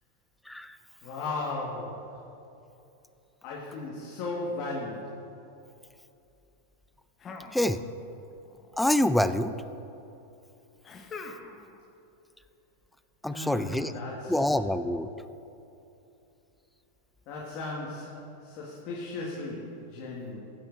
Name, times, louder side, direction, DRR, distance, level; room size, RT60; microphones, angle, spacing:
voice 1, 0.5-0.8 7.5-7.8 8.8-9.6 13.2-13.9 14.3-15.1, left 1 dB, 5° left, 12 dB, 0.4 m, -26 dB
voice 2, 1.0-2.2 3.4-5.2 13.3-14.5 17.3-20.4, left 2 dB, 50° left, -4 dB, 1.8 m, -36 dB
sound 1, 7.2-8.2 8.5-9.2 10.8-11.8, left 4 dB, 25° left, 0.9 m, -44 dB
15.5 x 7.4 x 4.0 m, 2.8 s
supercardioid pair, 135°, 0 cm